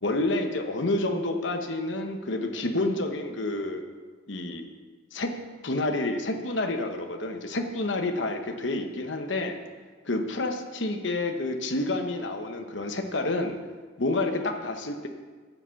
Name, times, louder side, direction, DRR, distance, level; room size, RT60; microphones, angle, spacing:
voice 1, 0.0-3.8 4.3-4.7 5.1-5.3 5.6-9.6 10.1-13.6 14.0-15.1, left 2 dB, 60° left, 5 dB, 1.0 m, -29 dB
10.5 x 7.6 x 7.0 m, 1.5 s
head